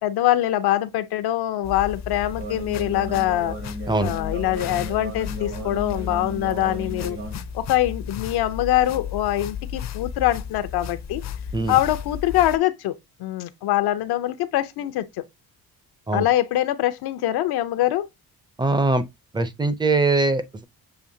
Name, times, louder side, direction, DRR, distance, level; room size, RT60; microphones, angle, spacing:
voice 1, 0.0-3.6 4.0-7.2 7.5-11.2 11.7-15.3 16.1-18.1, left 13 dB, 85° left, 0.7 m, -23 dB
sound 1, 1.6-12.6, left 7 dB, 45° left, 0.5 m, -34 dB
sound 2, 2.4-7.3, right 1 dB, 90° right, 3.3 m, -35 dB
voice 2, 18.6-19.1 19.3-20.6, right 2 dB, 15° right, 0.4 m, -22 dB
6.9 x 2.8 x 2.6 m
cardioid pair, 145°, 37 cm